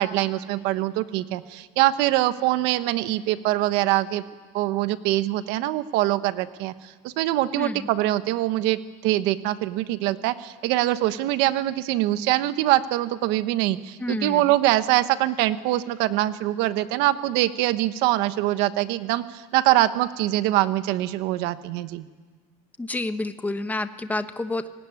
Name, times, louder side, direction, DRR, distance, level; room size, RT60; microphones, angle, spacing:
voice 1, 0.0-4.2 4.5-6.7 7.0-22.1, right 15 dB, 75° right, 12 dB, 1.2 m, -23 dB
voice 2, 7.6-7.9 14.0-14.5 22.8-24.7, left 2 dB, 10° left, 9 dB, 1.2 m, -29 dB
27.0 x 19.0 x 9.7 m, 1.4 s
cardioid pair, 145°, 17 cm